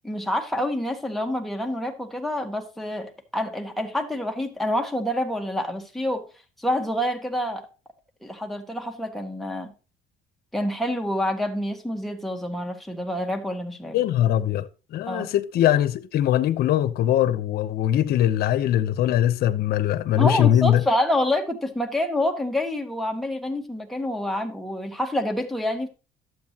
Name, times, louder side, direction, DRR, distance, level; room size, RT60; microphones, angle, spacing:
voice 1, 0.0-6.2 6.6-7.7 8.2-9.7 10.5-14.0 15.1-15.3 20.2-25.9, left 1 dB, ahead, 1.6 m, -27 dB
voice 2, 13.9-20.8, left 11 dB, 70° left, 0.8 m, -21 dB
11.5 x 7.9 x 2.9 m
cardioid pair, 110°, 17 cm